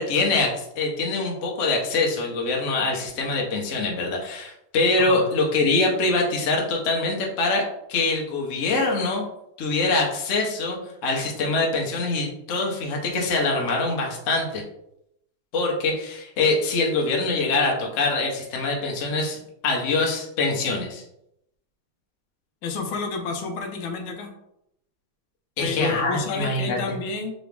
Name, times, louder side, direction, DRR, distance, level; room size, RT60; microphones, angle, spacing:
voice 1, 0.0-7.6 7.9-9.2 9.6-10.8 11.0-14.6 15.5-21.0 25.6-27.0, left 3 dB, 55° left, 0 dB, 0.9 m, -24 dB
voice 2, 22.6-24.3 25.6-27.3, left 4 dB, 80° left, 4 dB, 1.4 m, -30 dB
3.9 x 3.0 x 3.4 m, 0.79 s
omnidirectional pair, 2.3 m